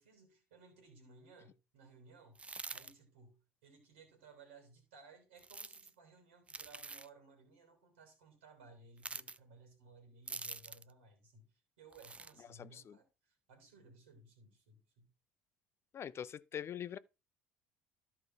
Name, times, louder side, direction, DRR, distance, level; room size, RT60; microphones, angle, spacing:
voice 1, 0.0-15.1, right 3 dB, 75° right, 3.3 m, -60 dB
sound 1, 2.3-2.9 5.4-5.9 6.5-7.1 9.0-9.4 10.3-10.9 11.9-12.3, right 3 dB, 20° right, 0.5 m, -46 dB
voice 2, 12.5-13.0 15.9-17.0, left 9 dB, 40° left, 0.5 m, -43 dB
13.5 x 4.7 x 3.8 m
hypercardioid pair, 60°, 7 cm